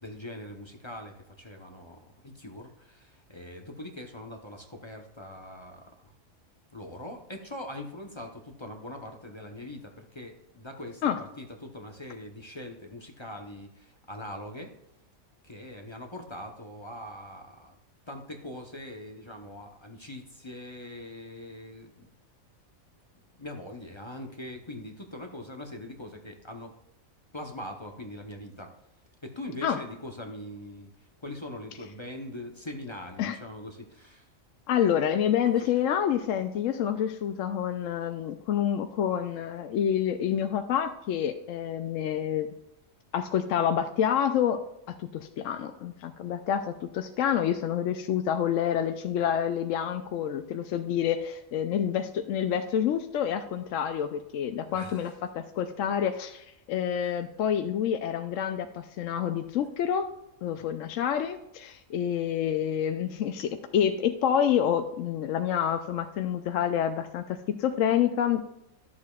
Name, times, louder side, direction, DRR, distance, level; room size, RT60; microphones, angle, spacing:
voice 1, 0.0-6.1 6.7-14.7 15.4-17.7 18.1-22.1 23.4-26.7 27.3-28.7 29.2-34.3 35.4-35.7 54.7-55.1 56.9-57.1 60.6-60.7, left 1 dB, 25° left, 3 dB, 0.7 m, -42 dB
voice 2, 34.7-42.5 43.1-44.6 44.9-60.1 60.4-68.5, left 9 dB, 70° left, 7 dB, 0.9 m, -28 dB
12.0 x 7.4 x 2.4 m, 0.84 s
omnidirectional pair, 1.5 m